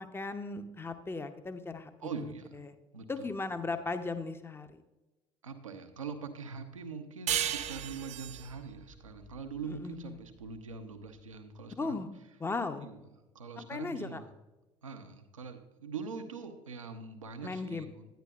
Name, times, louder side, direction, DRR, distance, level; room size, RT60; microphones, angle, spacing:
voice 1, 0.0-2.8 3.1-4.8 9.6-10.1 11.8-12.1 12.4-12.9 13.6-14.2 17.4-17.8, left 3 dB, 15° left, 9 dB, 0.7 m, -37 dB
voice 2, 2.0-2.5 2.9-3.3 5.4-12.0 12.8-13.0 13.3-14.3 14.8-18.1, right 5 dB, 85° right, 7 dB, 0.7 m, -43 dB
sound 1, 7.3-10.4, right 10 dB, 45° right, 0.5 m, -36 dB
10.0 x 9.6 x 2.4 m, 1.0 s
figure-of-eight pair, 55°, 16 cm